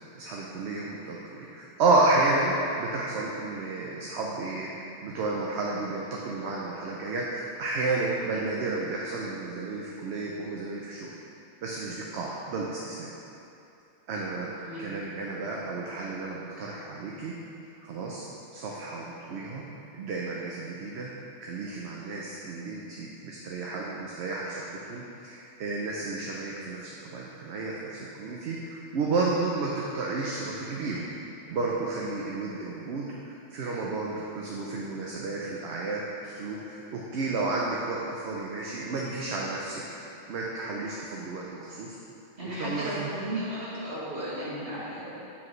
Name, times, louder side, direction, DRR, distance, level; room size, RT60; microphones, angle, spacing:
voice 1, 0.1-11.1 11.6-13.1 14.1-14.5 14.8-17.3 17.8-18.2 18.5-19.6 19.9-21.1 21.4-31.1 31.5-39.8 40.3-42.0 42.4-43.1, right 3 dB, 65° right, -3 dB, 0.9 m, -31 dB
voice 2, 42.4-45.2, equal, 50° right, -9 dB, 2.0 m, -34 dB
8.4 x 5.1 x 3.1 m, 2.8 s
omnidirectional pair, 1.3 m